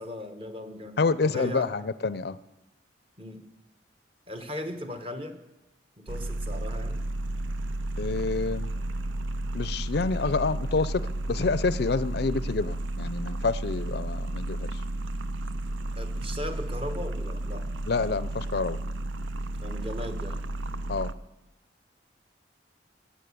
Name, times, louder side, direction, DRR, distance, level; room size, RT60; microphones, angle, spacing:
voice 1, 0.0-1.7 3.2-3.5 4.3-5.4 6.0-7.0 15.9-17.7 19.6-20.4, left 1 dB, 30° right, 6 dB, 1.2 m, -37 dB
voice 2, 1.0-2.4 8.0-8.7 9.5-14.8 17.9-18.8 20.9-21.1, left 4 dB, 55° left, 16 dB, 0.5 m, -28 dB
sound 1, 6.1-21.1, right 1 dB, 80° right, 0.6 m, -32 dB
18.0 x 7.3 x 8.4 m, 0.97 s
head